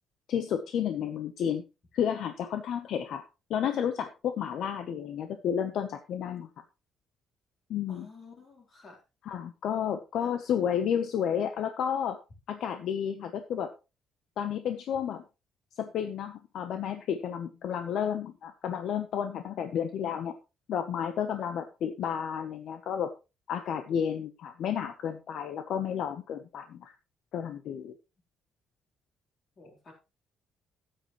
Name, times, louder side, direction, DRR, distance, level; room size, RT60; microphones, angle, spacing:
voice 1, 0.3-1.6 1.9-3.2 3.5-6.5 7.7-8.1 9.2-12.2 12.5-13.7 14.4-15.2 15.8-20.3 20.7-23.1 23.5-26.9 27.3-27.9, left 8 dB, 60° left, 8 dB, 0.9 m, -31 dB
voice 2, 7.9-9.0 10.2-10.3 29.6-29.9, left 4 dB, 30° left, 0 dB, 3.7 m, -51 dB
13.0 x 8.9 x 3.1 m, 0.28 s
cardioid pair, 175°, 0 cm